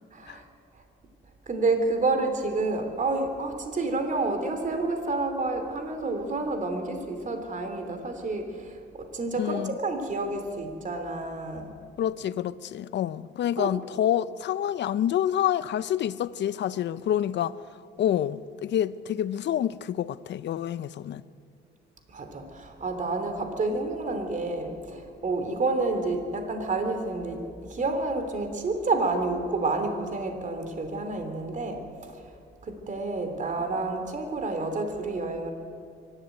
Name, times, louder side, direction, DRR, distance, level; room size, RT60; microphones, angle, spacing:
voice 1, 1.5-8.7 8.9-11.7 13.6-13.7 22.1-31.8 32.7-35.5, right 3 dB, 40° right, 2.9 m, -29 dB
voice 2, 9.4-9.7 12.0-17.6 18.0-21.2, left 10 dB, 65° left, 0.6 m, -27 dB
24.0 x 12.0 x 9.2 m
cardioid pair, 90°, 20 cm